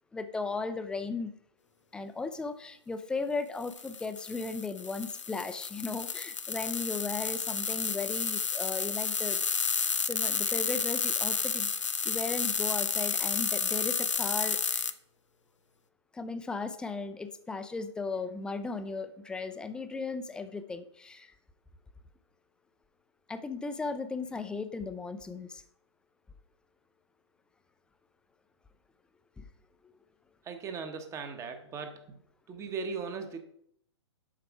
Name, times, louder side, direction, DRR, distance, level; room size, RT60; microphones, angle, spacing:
voice 1, 0.1-1.3 1.9-9.4 10.0-11.7 12.0-14.9 16.1-21.3 23.3-25.6 29.4-29.5, left 4 dB, 5° left, 10 dB, 0.4 m, -36 dB
sound 1, 3.6-14.9, left 5 dB, 85° left, 0.6 m, -31 dB
voice 2, 30.4-32.0 32.5-33.4, right 5 dB, 20° right, 7 dB, 0.9 m, -38 dB
7.6 x 5.7 x 4.7 m, 0.70 s
figure-of-eight pair, 120°, 15 cm